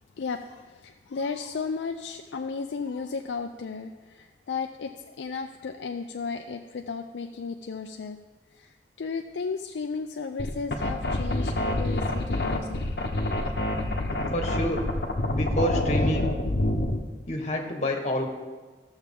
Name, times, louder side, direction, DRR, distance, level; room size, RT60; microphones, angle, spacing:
voice 1, 0.2-4.9 5.2-8.2 8.5-12.8, left 5 dB, 90° left, 4 dB, 0.4 m, -34 dB
sound 1, 10.4-17.0, left 1 dB, 65° left, 0.9 m, -27 dB
voice 2, 14.3-14.8 15.3-16.3 17.3-18.3, equal, 40° left, 1 dB, 1.3 m, -28 dB
14.0 x 7.2 x 3.7 m, 1.3 s
head